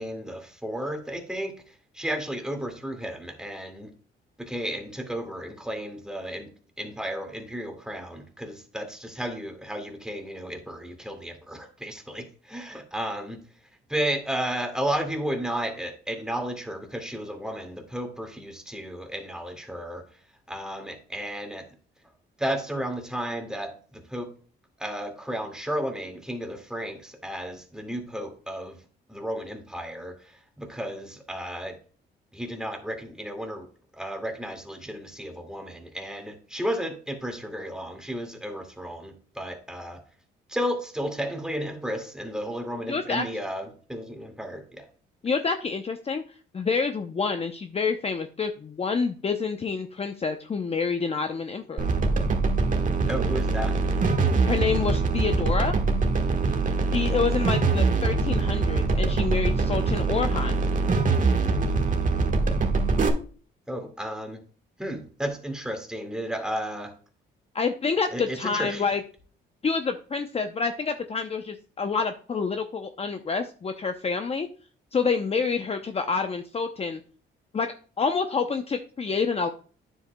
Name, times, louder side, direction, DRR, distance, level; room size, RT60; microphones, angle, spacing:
voice 1, 0.0-3.9 4.4-6.5 6.8-13.4 13.9-20.0 20.5-21.7 22.4-24.3 24.8-28.8 29.1-31.8 32.3-33.7 33.9-40.0 40.5-44.9 53.1-53.8 63.7-64.4 64.8-66.9 68.1-68.8, equal, 5° right, 4 dB, 2.0 m, -33 dB
voice 2, 42.9-43.2 45.2-46.2 46.5-51.9 54.4-55.8 56.9-60.6 67.5-69.0 69.6-74.5 74.9-77.0 77.5-77.7 78.0-79.5, left 5 dB, 30° left, 7 dB, 0.7 m, -27 dB
sound 1, 51.8-63.1, right 3 dB, 40° right, 1.4 m, -23 dB
9.6 x 7.6 x 2.2 m, 0.40 s
cardioid pair, 90°, 20 cm